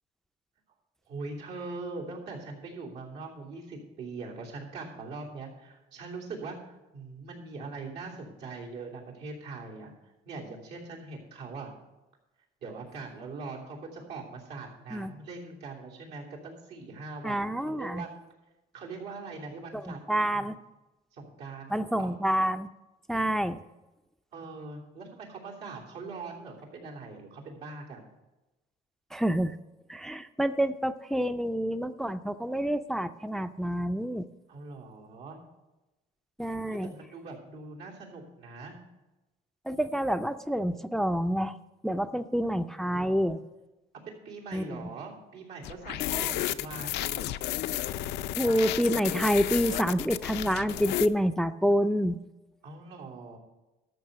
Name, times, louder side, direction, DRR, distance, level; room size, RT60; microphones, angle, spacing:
voice 1, 1.1-11.7 12.6-18.1 18.7-20.5 21.1-22.1 24.3-28.1 34.5-35.4 36.7-38.8 42.9-43.1 44.0-47.3 52.6-53.4, right 3 dB, 85° right, -3 dB, 3.2 m, -42 dB
voice 2, 17.2-18.1 19.7-20.5 21.7-22.7 23.1-23.6 29.1-29.6 29.9-34.3 36.4-36.9 39.7-41.6 41.8-43.4 44.5-44.8 46.1-46.4 48.4-52.2, equal, ahead, 11 dB, 0.4 m, -28 dB
sound 1, 45.6-51.1, left 14 dB, 80° left, 0.5 m, -32 dB
13.0 x 5.9 x 6.7 m, 1.0 s
cardioid pair, 110°, 17 cm